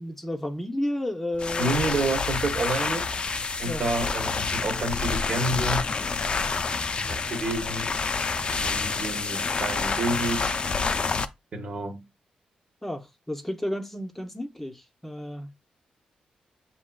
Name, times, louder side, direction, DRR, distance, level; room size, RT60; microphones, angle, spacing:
voice 1, 0.0-1.8 3.6-3.9 12.8-15.5, left 1 dB, 10° left, 0.7 m, -32 dB
sound 1, 1.3-11.2, left 4 dB, 40° left, 0.4 m, -28 dB
voice 2, 1.6-3.0 3.6-5.8 7.0-7.9 8.6-10.5 11.5-12.0, right 2 dB, 60° right, 1.1 m, -29 dB
7.2 x 2.8 x 2.3 m
cardioid pair, 75°, 3 cm